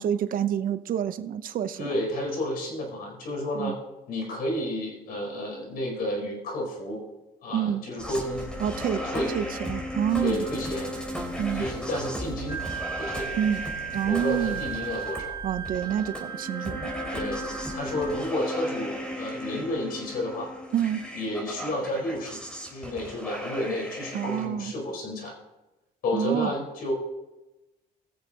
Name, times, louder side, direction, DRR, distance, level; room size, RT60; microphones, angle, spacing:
voice 1, 0.0-1.9 3.6-3.8 7.5-7.8 8.6-9.0 9.3-10.4 11.4-11.6 13.4-13.6 13.9-14.6 15.4-16.9 20.7-21.0 24.1-24.7 26.1-26.5, right 9 dB, 55° right, 11 dB, 0.8 m, -28 dB
voice 2, 1.8-3.8 4.1-7.0 7.4-8.5 9.0-9.3 10.2-10.9 11.5-12.6 13.0-13.3 14.0-15.4 17.1-17.4 17.7-20.5 21.1-22.4 22.7-25.3 26.0-26.9, left 1 dB, 60° left, 0 dB, 4.6 m, -31 dB
sound 1, 8.0-24.5, equal, 5° left, 3.0 m, -36 dB
sound 2, 8.2-14.1, left 1 dB, 30° left, 4.2 m, -47 dB
Wind instrument woodwind instrument, 12.5-18.3, right 8 dB, 25° right, 0.9 m, -36 dB
21.0 x 7.3 x 2.9 m, 1.0 s
cardioid pair, 110°, 17 cm